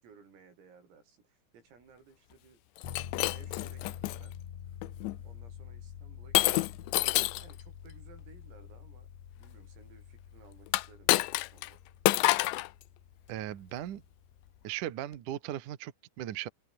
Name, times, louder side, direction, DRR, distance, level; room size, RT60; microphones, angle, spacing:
voice 1, 0.0-2.6 3.3-4.4 5.2-6.8 7.3-9.1 9.4-11.8, right 6 dB, 80° right, 9.5 m, -59 dB
Shatter, 2.8-4.2 4.8-5.2 6.4-7.5 10.7-11.7 12.1-12.7, left 19 dB, 80° left, 2.7 m, -28 dB
sound 1, 2.8-14.7, left 9 dB, 60° left, 4.7 m, -47 dB
voice 2, 13.3-14.0 14.6-16.5, right 12 dB, 60° right, 2.1 m, -38 dB
omnidirectional pair, 6.0 m